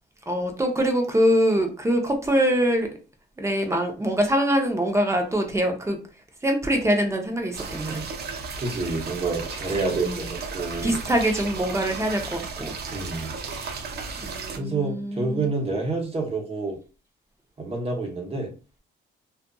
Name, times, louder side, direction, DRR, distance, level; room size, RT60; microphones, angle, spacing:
voice 1, 0.3-2.9 3.4-6.0 6.4-8.1 9.7-10.3 10.8-12.7 14.2-15.5, equal, 15° right, 3 dB, 0.7 m, -24 dB
sound 1, 7.5-14.6, right 4 dB, 55° right, 0.5 m, -35 dB
voice 2, 8.2-11.0 12.9-13.3 14.0-16.8 17.6-18.5, right 3 dB, 30° right, 0 dB, 1.0 m, -29 dB
2.5 x 2.5 x 2.3 m, 0.35 s
cardioid pair, 90°, 20 cm